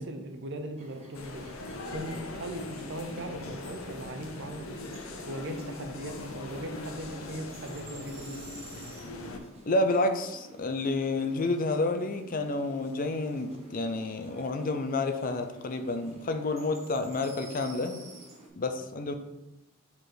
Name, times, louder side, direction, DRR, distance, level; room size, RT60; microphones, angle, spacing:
voice 1, 0.0-4.9 5.3-8.4, right 1 dB, 60° right, 5 dB, 0.8 m, -39 dB
sound 1, 0.8-18.5, right 2 dB, 30° right, 1.5 m, -51 dB
sound 2, 1.1-9.4, left 2 dB, 85° left, 0.8 m, -41 dB
voice 2, 9.7-18.0 18.6-19.1, left 2 dB, 45° left, 7 dB, 0.5 m, -29 dB
4.9 x 4.8 x 4.0 m, 0.94 s
head